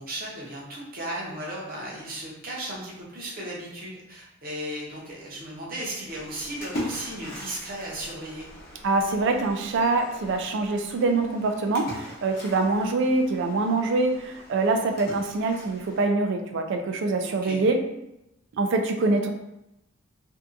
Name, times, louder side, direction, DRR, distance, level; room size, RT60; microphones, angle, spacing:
voice 1, 0.0-8.5 17.2-17.6, right 1 dB, 45° right, -4 dB, 0.7 m, -35 dB
Splash splatter, 6.1-16.0, left 1 dB, 50° left, 0.7 m, -41 dB
voice 2, 8.8-17.8 18.5-19.3, right 3 dB, 65° right, 5 dB, 0.3 m, -24 dB
2.6 x 2.3 x 2.5 m, 0.88 s
head